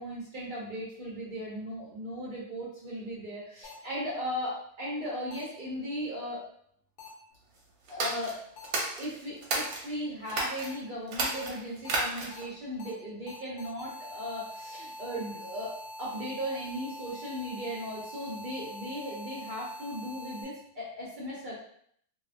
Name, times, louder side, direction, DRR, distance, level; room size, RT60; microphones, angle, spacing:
voice 1, 0.0-6.4 7.9-8.3 9.0-15.7 16.0-21.5, equal, 45° right, -7 dB, 0.6 m, -37 dB
sound 1, 3.6-3.7 5.3-5.4 7.0-7.1 8.6-8.7 9.6-9.7 10.6-10.7 11.3-11.4 11.8-11.9 12.3-12.4 12.8-12.9 13.3-20.4, left 1 dB, 85° left, 1.2 m, -44 dB
sound 2, 7.9-9.8 10.3-10.7 11.1-12.5, right 2 dB, 65° right, 1.0 m, -32 dB
2.7 x 2.3 x 2.4 m, 0.65 s
omnidirectional pair, 1.7 m